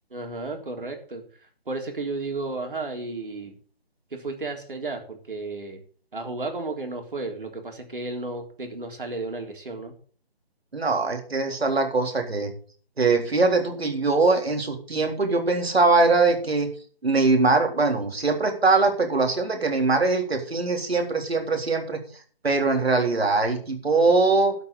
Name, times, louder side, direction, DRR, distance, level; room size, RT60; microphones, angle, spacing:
voice 1, 0.1-1.2 1.7-3.5 4.1-5.8 6.1-9.9, right 3 dB, 60° right, 4 dB, 3.7 m, -33 dB
voice 2, 10.7-12.5 13.0-16.7 17.0-22.0 22.4-24.5, right 3 dB, 85° right, 5 dB, 3.8 m, -22 dB
12.5 x 5.9 x 8.4 m, 0.44 s
hypercardioid pair, 180°, 30 cm